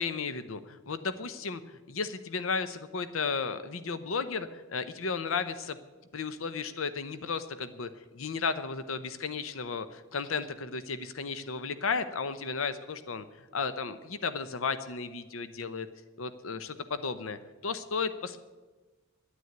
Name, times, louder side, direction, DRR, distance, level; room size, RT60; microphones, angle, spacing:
voice 1, 0.0-5.8 6.1-15.9 16.2-18.4, left 5 dB, 75° left, 12 dB, 0.7 m, -34 dB
11.0 x 9.4 x 9.3 m, 1.2 s
head